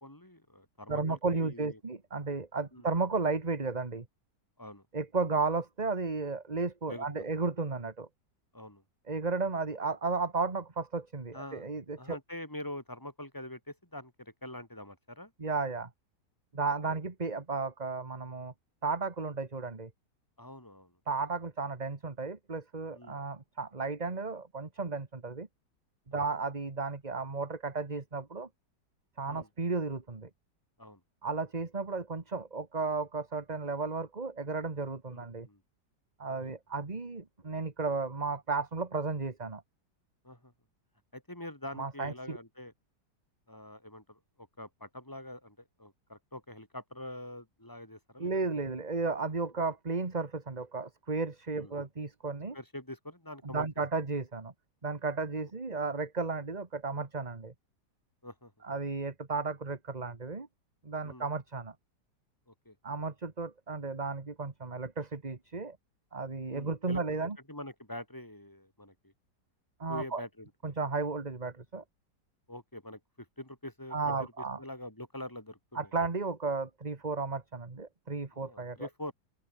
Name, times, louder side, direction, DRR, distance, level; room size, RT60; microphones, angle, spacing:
voice 1, 0.0-1.8 2.7-2.9 4.6-4.8 6.9-7.3 8.5-8.8 11.3-11.7 12.0-15.3 20.4-20.9 22.9-23.2 26.1-26.2 29.2-29.5 30.8-31.0 35.1-35.6 36.3-36.5 40.2-40.5 41.1-42.7 43.5-48.3 51.6-51.7 52.5-53.7 58.2-58.5 61.0-61.3 62.5-62.7 66.5-67.0 67.5-69.1 69.9-70.7 72.5-74.3 74.6-75.9 78.3-79.1, left 1 dB, 10° left, 4.9 m, -45 dB
voice 2, 0.9-4.1 4.9-8.1 9.1-12.2 15.4-15.9 16.5-18.5 18.8-19.9 21.1-25.5 26.1-28.5 29.2-30.3 31.2-35.5 36.2-39.6 41.8-42.4 48.2-52.6 53.4-54.5 54.8-57.5 58.6-60.5 60.8-61.7 62.8-65.8 66.1-67.4 69.8-70.2 70.6-71.8 73.9-74.6 75.7-78.9, right 4 dB, 25° right, 1.8 m, -34 dB
open air
omnidirectional pair, 1.9 m